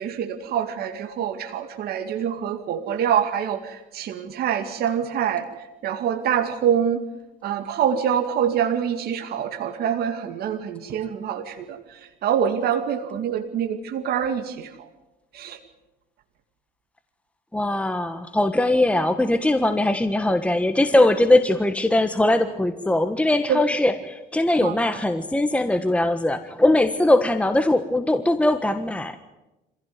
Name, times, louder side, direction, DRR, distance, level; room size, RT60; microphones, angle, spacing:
voice 1, 0.0-5.5 5.8-7.0 7.4-14.7 15.3-15.6 23.5-23.6 24.6-25.0, right 8 dB, 70° right, 6 dB, 2.3 m, -25 dB
voice 2, 17.5-29.2, left 1 dB, 5° left, 8 dB, 1.4 m, -21 dB
26.0 x 16.5 x 9.6 m, 1.0 s
cardioid pair, 110°, 17 cm